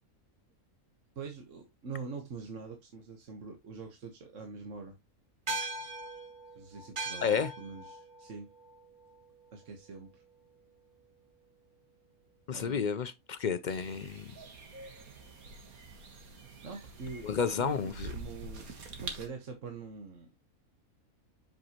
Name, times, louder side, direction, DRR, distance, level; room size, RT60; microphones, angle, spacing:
voice 1, 1.1-5.0 6.6-8.5 9.5-10.2 12.5-13.0 16.6-17.3 17.6-18.7 19.0-20.3, right 5 dB, 60° right, 1.6 m, -44 dB
sound 1, 5.5-10.1, right 2 dB, 40° right, 1.5 m, -41 dB
voice 2, 7.2-7.5 12.5-14.3 17.2-18.1, left 6 dB, 60° left, 0.5 m, -31 dB
sound 2, 13.7-19.3, right 3 dB, 90° right, 2.0 m, -46 dB
7.7 x 6.1 x 2.9 m
omnidirectional pair, 1.5 m